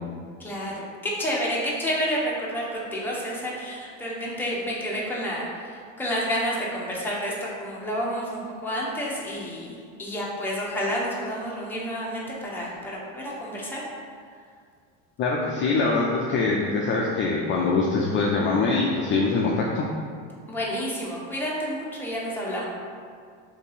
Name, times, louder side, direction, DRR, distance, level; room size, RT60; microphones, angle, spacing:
voice 1, 0.4-13.8 20.5-22.7, equal, 5° left, -5 dB, 0.7 m, -30 dB
voice 2, 15.2-19.9, left 3 dB, 35° left, -2 dB, 0.4 m, -23 dB
2.7 x 2.6 x 4.0 m, 2.1 s
supercardioid pair, 105°, 37 cm